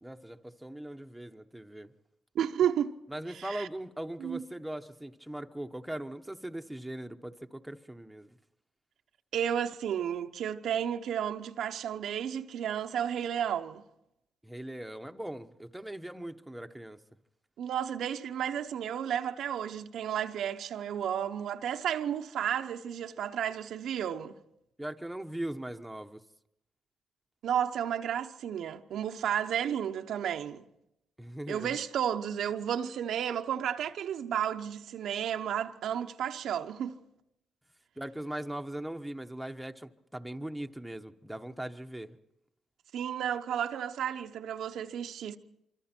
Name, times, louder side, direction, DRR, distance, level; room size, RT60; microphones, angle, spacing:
voice 1, 0.0-1.9 3.1-8.3 14.4-17.0 24.8-26.2 31.2-31.7 38.0-42.2, right 1 dB, 5° right, 1.1 m, -40 dB
voice 2, 2.3-2.9 3.3-3.7 4.2-4.4 9.3-13.8 17.6-24.3 27.4-30.6 31.5-37.0 42.9-45.4, right 9 dB, 75° right, 0.9 m, -32 dB
25.5 x 25.0 x 4.5 m
cardioid pair, 75°, 0 cm